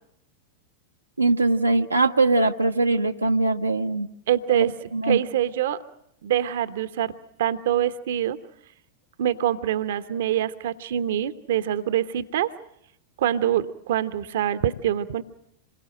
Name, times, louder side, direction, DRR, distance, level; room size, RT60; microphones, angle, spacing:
voice 1, 1.2-4.1 4.5-4.6 4.9-5.2, right 2 dB, 85° right, 3 dB, 1.0 m, -21 dB
voice 2, 4.3-4.7 5.0-5.8 6.2-7.1 7.4-8.4 9.2-12.5 13.2-15.2, right 11 dB, 55° right, 12 dB, 1.0 m, -25 dB
27.5 x 22.0 x 7.7 m, 0.77 s
figure-of-eight pair, 90°, 0 cm